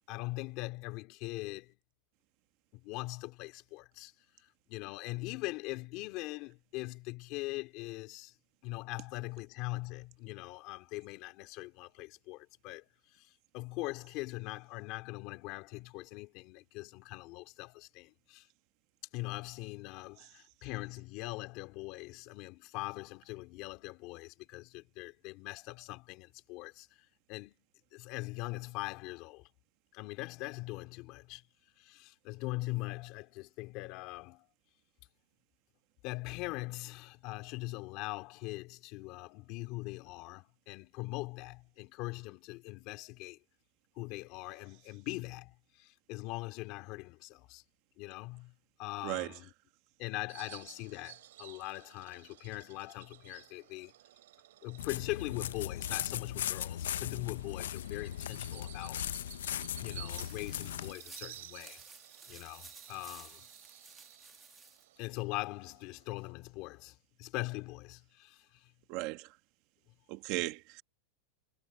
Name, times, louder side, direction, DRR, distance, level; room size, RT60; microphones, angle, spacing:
voice 1, 0.1-1.7 2.7-4.1 4.4-8.3 8.6-18.5 19.1-27.5 27.9-29.5 29.9-31.4 31.8-34.5 36.0-43.4 43.9-47.6 48.0-48.5 48.8-49.5 50.0-53.9 54.6-59.1 59.8-61.8 62.3-63.4 65.0-68.7, left 21 dB, 35° left, 3.0 m, -42 dB
voice 2, 49.0-49.3 68.9-69.3 70.1-70.8, right 20 dB, 40° right, 1.5 m, -36 dB
Bird vocalization bird call bird song, 50.3-66.3, right 14 dB, 70° right, 4.4 m, -54 dB
sound 1, 54.8-60.9, left 11 dB, 85° left, 0.4 m, -38 dB
sound 2, 60.1-64.8, right 4 dB, 10° right, 1.4 m, -54 dB
supercardioid pair, 165°, 0 cm